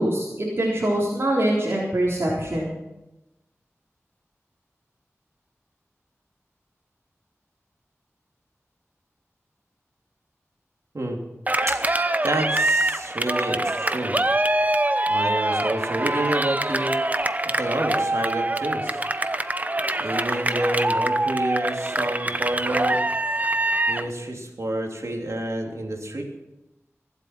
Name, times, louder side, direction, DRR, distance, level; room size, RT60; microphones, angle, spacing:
voice 1, 0.0-2.8, right 1 dB, 55° right, -6 dB, 3.9 m, -24 dB
Cheering, 11.5-24.1, right 1 dB, 30° right, 0.8 m, -24 dB
voice 2, 12.2-14.2 15.1-17.0 17.6-19.0 20.0-23.0 23.9-26.2, right 1 dB, 70° right, 1 dB, 3.1 m, -28 dB
24.5 x 8.2 x 6.0 m, 0.95 s
wide cardioid pair, 60°, 5 cm